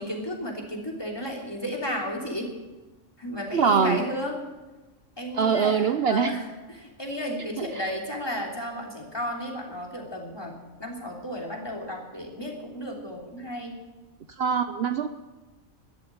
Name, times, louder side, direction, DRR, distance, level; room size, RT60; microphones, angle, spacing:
voice 1, 0.0-2.5 3.2-4.4 5.2-13.7, equal, 20° left, 1 dB, 3.2 m, -33 dB
voice 2, 3.5-4.0 5.3-6.3 7.6-7.7 14.4-15.1, right 6 dB, 60° right, 10 dB, 0.9 m, -23 dB
13.5 x 11.5 x 8.7 m, 1.2 s
omnidirectional pair, 1.3 m